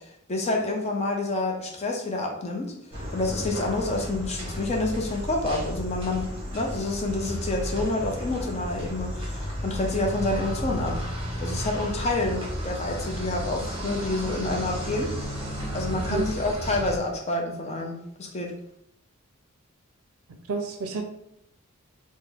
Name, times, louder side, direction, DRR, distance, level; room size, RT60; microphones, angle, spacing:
voice 1, 0.3-2.7 3.1-11.0 11.4-15.1 15.7-18.5, left 2 dB, 30° left, 1 dB, 0.5 m, -28 dB
sound 1, 2.9-17.0, equal, 25° right, 0.9 m, -33 dB
voice 2, 15.9-16.2 20.5-21.0, right 4 dB, 80° right, 5 dB, 0.5 m, -29 dB
3.7 x 2.0 x 3.3 m, 0.77 s
head